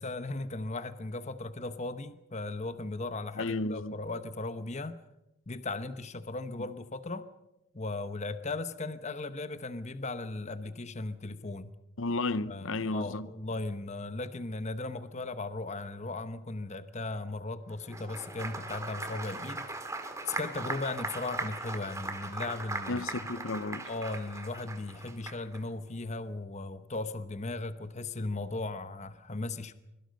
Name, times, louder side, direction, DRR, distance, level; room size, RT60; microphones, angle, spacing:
voice 1, 0.0-5.0 5.5-7.3 7.7-11.7 12.5-19.7 20.3-23.2 23.9-29.7, left 2 dB, 35° left, 0.9 m, -37 dB
voice 2, 3.4-3.9 6.6-6.7 12.0-13.3 22.9-23.9, left 2 dB, 70° left, 0.8 m, -33 dB
Applause, 17.8-25.6, right 2 dB, 15° right, 2.2 m, -39 dB
24.5 x 23.5 x 5.3 m
head